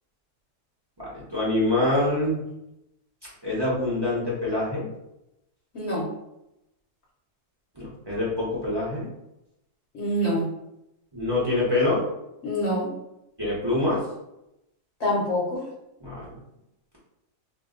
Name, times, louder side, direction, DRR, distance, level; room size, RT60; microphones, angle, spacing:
voice 1, 1.0-2.4 3.4-4.9 7.8-9.1 11.1-12.0 13.4-14.0 16.0-16.4, left 2 dB, 25° right, -7 dB, 0.6 m, -25 dB
voice 2, 5.7-6.1 9.9-10.5 12.4-12.9 15.0-15.6, equal, 50° left, -6 dB, 1.0 m, -25 dB
2.7 x 2.1 x 3.7 m, 0.87 s
omnidirectional pair, 1.7 m